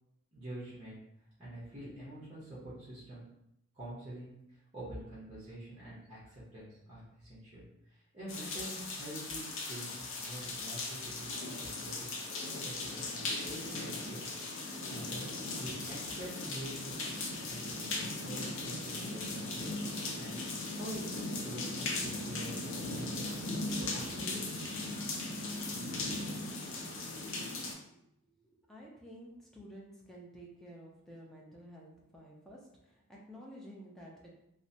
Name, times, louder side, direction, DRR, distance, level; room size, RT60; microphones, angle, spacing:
voice 1, 0.3-1.0 1.4-3.3 3.7-12.1 12.6-14.3 14.9-15.3 15.6-16.7 17.2-19.8 20.1-23.4 23.8-24.5, right 1 dB, 25° right, -10 dB, 0.7 m, -46 dB
sound 1, 8.3-27.7, left 2 dB, 55° left, 0.5 m, -38 dB
voice 2, 28.3-34.3, equal, ahead, -4 dB, 0.4 m, -52 dB
2.7 x 2.1 x 2.7 m, 0.80 s
head